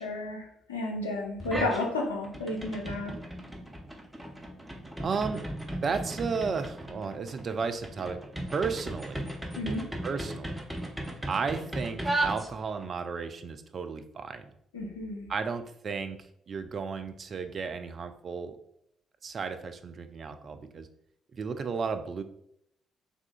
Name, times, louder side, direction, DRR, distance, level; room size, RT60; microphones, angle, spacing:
voice 1, 0.0-3.1 9.6-9.8 14.7-15.3, left 2 dB, 85° left, -1 dB, 0.6 m, -32 dB
sound 1, 1.4-1.9 2.2-12.9, right 1 dB, 10° right, 0.7 m, -36 dB
voice 2, 5.0-5.5 5.8-9.3 10.0-10.6 11.3-14.5 15.3-16.2 16.5-18.6 19.2-20.9 21.3-22.2, right 5 dB, 45° right, 8 dB, 0.4 m, -33 dB
3.5 x 3.5 x 2.4 m, 0.72 s
figure-of-eight pair, 45°, 0 cm